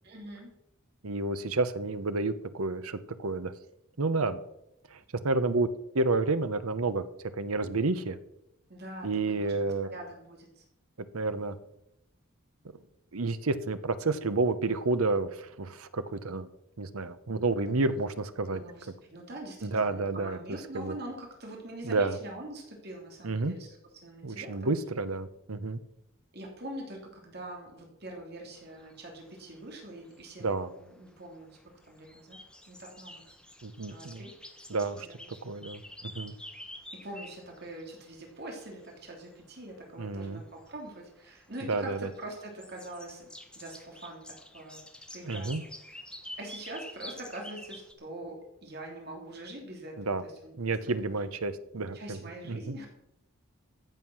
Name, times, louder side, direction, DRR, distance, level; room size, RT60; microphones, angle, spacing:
voice 1, 0.0-0.5 8.7-9.5 9.8-10.6 17.7-18.0 18.5-24.7 26.3-30.5 30.8-31.6 31.8-32.4 32.7-33.3 33.9-34.3 35.0-35.3 36.9-43.3 43.5-44.8 45.1-45.5 45.9-46.0 46.4-51.2 51.9-52.9, right 1 dB, 50° right, 0 dB, 2.9 m, -44 dB
voice 2, 1.0-3.5 4.0-4.4 4.9-5.7 5.9-7.0 7.3-8.2 9.0-9.9 11.1-11.6 13.1-16.5 16.8-18.6 19.6-20.4 20.7-20.9 21.8-22.2 23.2-23.5 24.2-25.8 30.4-30.7 33.6-34.2 34.7-35.1 35.4-36.3 40.0-40.4 41.7-42.0 45.2-45.6 50.1-50.2 50.6-52.2 52.4-52.9, right 3 dB, 85° right, 12 dB, 1.0 m, -30 dB
sound 1, 28.6-47.9, left 1 dB, 5° left, 1.2 m, -49 dB
15.0 x 7.4 x 6.3 m, 0.82 s
head